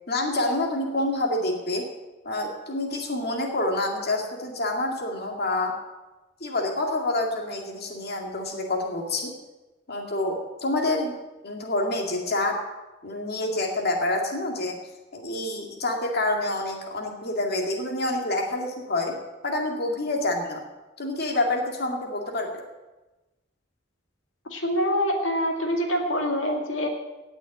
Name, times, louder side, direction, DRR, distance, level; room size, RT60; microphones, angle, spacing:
voice 1, 0.1-1.9 2.2-5.8 6.4-9.3 9.9-11.1 11.4-12.6 13.0-14.8 15.1-19.2 19.4-20.6 21.0-22.6, left 2 dB, 55° left, 1 dB, 2.2 m, -27 dB
voice 2, 24.5-26.9, equal, 90° left, 1 dB, 2.3 m, -25 dB
17.5 x 6.1 x 8.8 m, 1.1 s
head